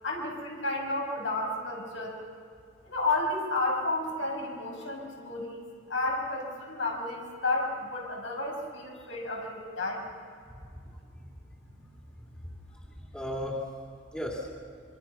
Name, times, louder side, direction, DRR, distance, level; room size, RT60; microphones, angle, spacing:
voice 1, 0.0-2.2 2.8-5.6 5.9-10.0, left 2 dB, 70° left, 0 dB, 5.4 m, -32 dB
voice 2, 10.5-10.8 11.2-11.3 11.6-11.8 12.4-13.6 14.1-14.5, equal, 5° left, -2 dB, 2.8 m, -37 dB
26.5 x 25.0 x 5.8 m, 2.3 s
head